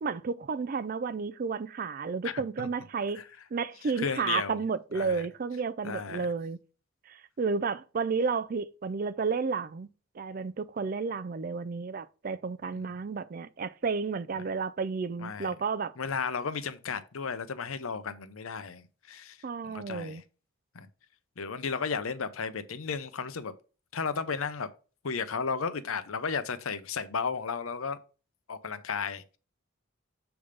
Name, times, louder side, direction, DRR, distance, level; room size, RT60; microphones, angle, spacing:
voice 1, 0.0-3.2 3.5-6.6 7.1-9.9 10.2-15.9 19.4-20.2, right 5 dB, 40° right, 0.3 m, -32 dB
voice 2, 2.2-2.7 3.1-3.3 3.8-4.6 4.9-5.2 5.8-6.3 12.7-12.8 14.4-14.5 15.2-15.5 16.0-19.4 19.6-20.2 20.7-20.9 21.4-23.5 23.9-24.7 25.0-28.0 28.5-29.4, left 5 dB, 80° left, 0.7 m, -34 dB
7.0 x 3.4 x 5.0 m
head